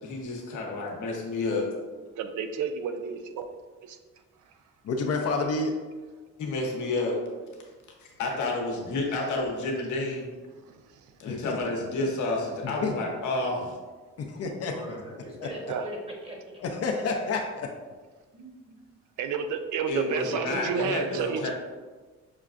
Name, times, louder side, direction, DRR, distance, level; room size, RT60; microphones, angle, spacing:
voice 1, 0.0-1.7 6.4-7.2 8.2-10.3 11.2-13.8 19.9-21.5, left 2 dB, 75° left, 0 dB, 0.9 m, -30 dB
voice 2, 2.2-3.5 3.8-4.0 10.7-10.8 15.7-15.9 19.2-21.5, right 6 dB, 75° right, 8 dB, 0.5 m, -31 dB
voice 3, 4.8-5.7 11.3-11.6 12.6-12.9 14.2-14.8 15.4-15.5 16.6-17.7, left 3 dB, 55° left, 2 dB, 0.5 m, -29 dB
voice 4, 14.7-16.6 18.3-18.7 20.2-21.5, right 1 dB, 20° right, -2 dB, 1.1 m, -40 dB
6.0 x 2.2 x 2.5 m, 1.4 s
cardioid pair, 90°, 30 cm